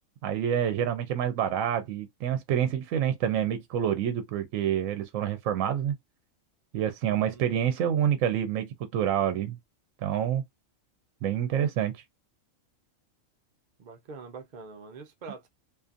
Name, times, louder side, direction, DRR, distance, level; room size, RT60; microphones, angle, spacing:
voice 1, 0.2-6.0 6.7-9.6 10.0-10.4 11.2-11.9, right 9 dB, 75° right, 0.9 m, -27 dB
voice 2, 7.0-7.7 13.8-15.5, right 4 dB, 45° right, 0.6 m, -45 dB
2.6 x 2.5 x 2.4 m
omnidirectional pair, 1.4 m